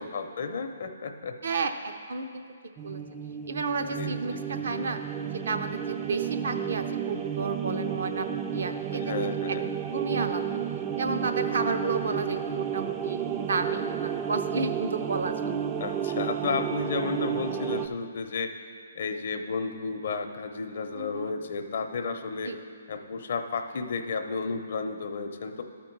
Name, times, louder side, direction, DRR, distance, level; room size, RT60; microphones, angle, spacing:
voice 1, 0.0-1.4 4.0-4.4 8.9-9.7 12.0-12.5 15.8-18.5 19.0-22.6 22.9-25.6, left 4 dB, 60° left, 6 dB, 0.6 m, -33 dB
voice 2, 1.4-2.4 2.8-3.0 3.5-5.0 5.5-9.0 9.5-9.6 9.9-10.6 11.0-15.5 20.9-21.3 22.4-22.6, right 3 dB, 75° right, 7 dB, 0.6 m, -32 dB
sound 1, 2.8-17.9, right 8 dB, 20° right, 0.3 m, -31 dB
12.5 x 4.4 x 4.5 m, 2.1 s
hypercardioid pair, 150°, 0 cm